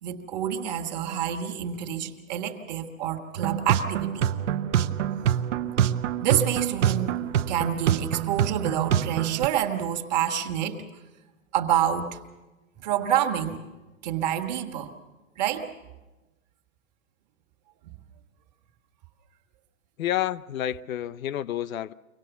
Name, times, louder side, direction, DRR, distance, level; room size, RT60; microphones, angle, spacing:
voice 1, 0.0-4.3 6.2-10.8 11.5-12.2 12.8-13.6 14.0-14.9 15.4-15.7, right 10 dB, 30° right, 1.4 m, -28 dB
sound 1, 3.4-9.5, right 10 dB, 60° right, 0.8 m, -26 dB
voice 2, 20.0-21.9, left 12 dB, 75° left, 0.7 m, -29 dB
24.5 x 18.0 x 7.0 m
hypercardioid pair, 175°, 41 cm